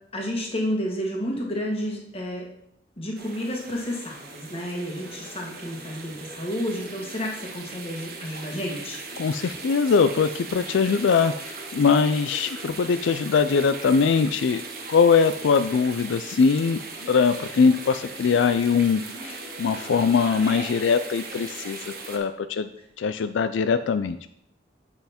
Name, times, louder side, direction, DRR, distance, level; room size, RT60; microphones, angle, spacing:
voice 1, 0.1-2.4 3.0-9.0, equal, 35° left, -1 dB, 1.5 m, -31 dB
sound 1, 3.2-22.2, right 3 dB, 55° right, 1.3 m, -39 dB
voice 2, 9.2-14.6 14.9-21.8 22.1-22.7 23.0-24.2, left 5 dB, 85° left, 10 dB, 0.4 m, -22 dB
7.8 x 5.7 x 4.3 m, 0.74 s
head